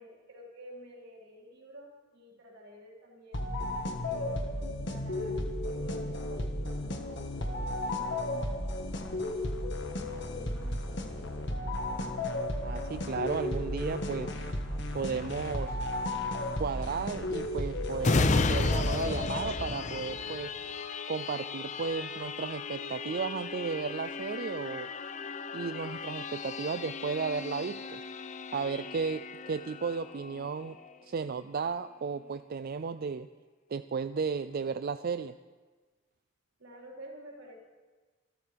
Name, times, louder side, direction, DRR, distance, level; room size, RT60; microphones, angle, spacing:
voice 1, 0.0-4.4 4.8-5.4 5.7-8.7 9.3-9.8 10.1-11.5 36.6-37.6, equal, 85° right, -3 dB, 4.5 m, -51 dB
sound 1, 3.3-19.8, left 1 dB, 60° left, 1.6 m, -34 dB
voice 2, 12.6-14.3 14.9-15.8 16.6-20.5 21.1-24.9 25.5-28.0 28.5-30.8 31.0-33.3 33.7-35.4, right 5 dB, 50° right, 11 dB, 0.4 m, -34 dB
sound 2, 18.0-31.3 31.8-31.9, left 3 dB, 35° left, 0.6 m, -34 dB
26.0 x 13.0 x 3.5 m, 1.3 s
head